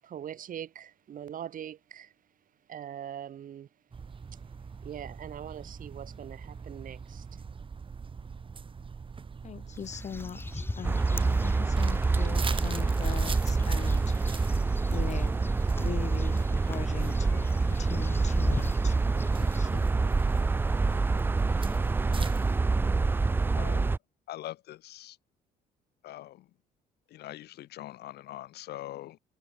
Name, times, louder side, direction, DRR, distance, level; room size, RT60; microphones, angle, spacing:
voice 1, 0.0-2.1 2.7-3.7 4.8-7.3, right 10 dB, 55° right, 7.8 m, -42 dB
sound 1, 3.9-22.6, right 5 dB, 30° right, 4.9 m, -43 dB
voice 2, 9.4-14.6 14.9-15.3 15.8-18.9 19.4-19.9, left 8 dB, 45° left, 2.4 m, -41 dB
sound 2, 9.7-19.7, left 2 dB, 15° left, 6.7 m, -41 dB
sound 3, 10.8-24.0, right 3 dB, 15° right, 0.3 m, -26 dB
voice 3, 23.6-23.9 24.3-25.2 26.0-26.5 27.1-29.2, left 15 dB, 75° left, 6.6 m, -42 dB
cardioid pair, 110°, 17 cm